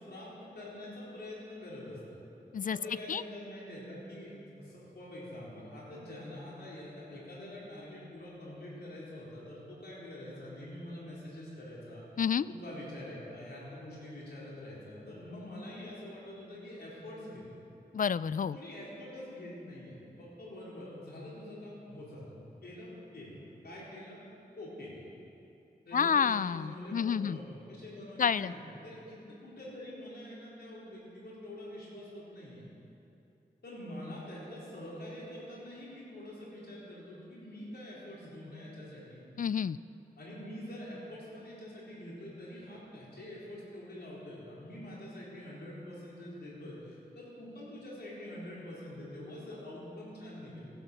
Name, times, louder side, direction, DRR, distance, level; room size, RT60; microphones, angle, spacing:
voice 1, 0.0-2.2 2.7-12.0 12.5-17.5 18.5-22.4 22.6-24.2 24.6-25.0 25.9-32.7 33.6-39.3 40.2-50.7, left 1 dB, 75° left, -6 dB, 4.3 m, -45 dB
voice 2, 17.9-18.6 25.9-27.4 28.2-28.5 39.4-39.8, left 7 dB, 55° left, 18 dB, 0.4 m, -29 dB
15.5 x 11.5 x 6.8 m, 2.9 s
cardioid pair, 50°, 17 cm